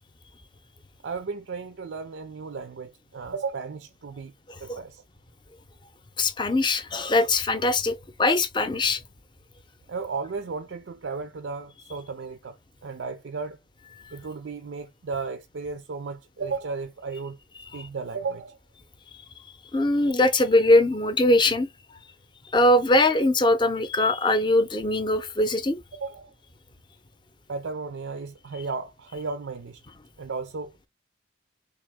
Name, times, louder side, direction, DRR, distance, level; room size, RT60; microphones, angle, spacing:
voice 1, 1.0-4.3 4.6-5.0 9.9-13.6 14.1-17.4 17.7-18.6 25.9-26.3 27.5-29.8 30.2-30.9, right 4 dB, 85° right, 0.5 m, -34 dB
voice 2, 4.5-4.8 6.2-9.0 14.0-14.2 17.7-17.8 19.7-21.7 22.5-25.8, left 1 dB, 25° left, 0.6 m, -22 dB
3.5 x 2.8 x 3.5 m
head